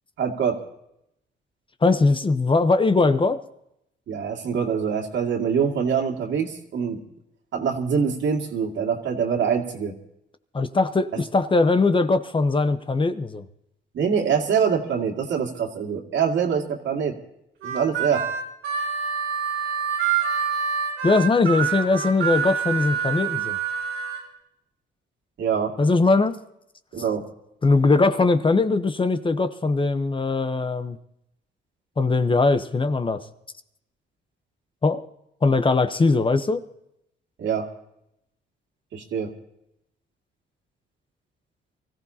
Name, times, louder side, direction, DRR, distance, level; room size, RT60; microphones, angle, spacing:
voice 1, 0.2-0.6 4.1-7.0 7.5-9.9 13.9-17.1 17.6-18.2 25.4-25.7 26.9-27.2 37.4-37.7 38.9-39.3, right 7 dB, 70° right, 2 dB, 2.4 m, -24 dB
voice 2, 1.8-3.4 10.5-13.4 21.0-23.6 25.8-26.4 27.6-31.0 32.0-33.2 34.8-35.0 35.4-36.6, left 3 dB, 25° left, 10 dB, 0.9 m, -20 dB
Harmonica, 17.6-24.2, right 7 dB, 90° right, 3.5 m, -26 dB
24.5 x 15.0 x 2.9 m, 0.80 s
cardioid pair, 90°, 20 cm